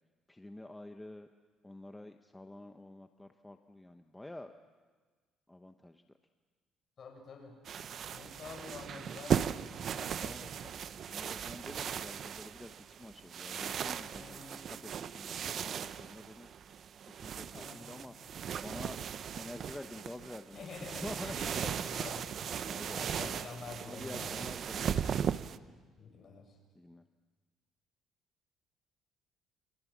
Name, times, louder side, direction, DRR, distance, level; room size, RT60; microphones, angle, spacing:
voice 1, 0.3-1.3 1.6-4.5 5.5-6.0 10.1-10.4 11.1-16.5 17.0-18.1 18.6-21.4 22.5-23.4 23.9-25.0 26.7-27.0, left 1 dB, 10° left, 6 dB, 1.0 m, -48 dB
voice 2, 7.0-7.6 8.1-9.6 9.9-10.8 14.2-14.6 17.5-18.0 20.5-22.3 22.6-24.6 26.0-26.6, left 4 dB, 40° left, 2 dB, 7.5 m, -48 dB
sound 1, 7.6-25.6, right 8 dB, 50° right, 0.8 m, -38 dB
29.0 x 25.5 x 7.4 m, 1.4 s
cardioid pair, 120°, 0 cm